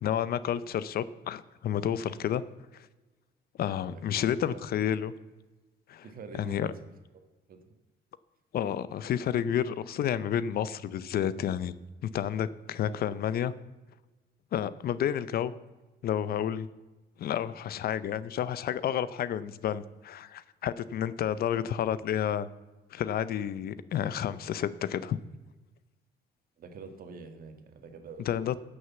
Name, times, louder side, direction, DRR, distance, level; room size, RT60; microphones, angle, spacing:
voice 1, 0.0-2.4 2.7-2.9 3.6-5.1 5.9-6.0 6.4-6.7 8.5-11.7 12.0-13.5 14.5-15.5 16.0-16.7 17.2-22.5 22.9-25.2 28.3-28.6, left 9 dB, 55° left, 16 dB, 0.6 m, -30 dB
voice 2, 3.9-4.6 5.0-5.1 6.0-6.9 7.5-7.6 21.5-21.9 26.6-28.6, right 4 dB, 55° right, 7 dB, 1.7 m, -46 dB
13.0 x 6.4 x 7.0 m, 1.2 s
cardioid pair, 130°, 18 cm